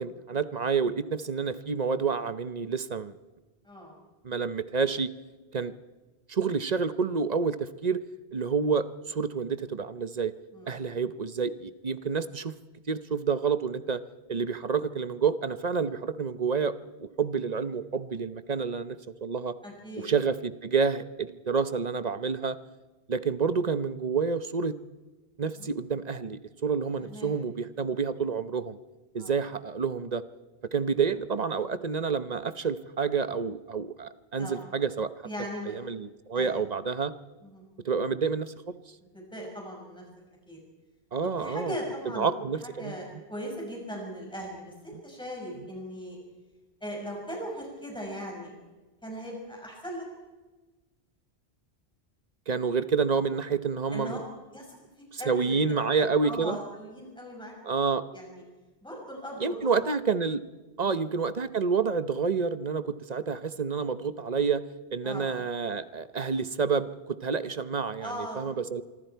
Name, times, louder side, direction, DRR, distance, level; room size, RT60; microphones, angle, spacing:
voice 1, 0.0-3.1 4.2-5.1 5.5-5.7 6.3-8.0 8.3-10.3 10.7-12.5 12.9-14.0 14.3-16.7 17.0-19.5 20.0-22.6 23.1-24.7 25.4-28.8 29.1-30.2 30.7-35.1 35.7-37.1 37.8-38.5 41.1-41.7 42.2-42.9 52.5-54.2 55.3-56.6 57.6-58.0 59.4-60.4 60.8-64.6 64.9-66.9 67.2-68.8, right 5 dB, 40° right, 12 dB, 0.9 m, -28 dB
voice 2, 10.5-10.9 15.8-16.0 19.6-20.1 25.6-25.7 27.0-27.4 29.2-29.4 34.4-34.7 35.2-35.8 36.3-36.5 37.4-37.6 39.0-40.0 40.5-40.6 41.2-42.3 42.6-43.0 43.3-46.2 46.8-48.6 49.0-50.1 53.9-54.2 54.5-54.8 55.2-57.5 58.1-58.4 58.8-59.9 65.0-65.3 68.0-68.5, equal, 5° left, -1 dB, 5.5 m, -39 dB
26.0 x 23.5 x 4.6 m, 1.2 s
omnidirectional pair, 1.1 m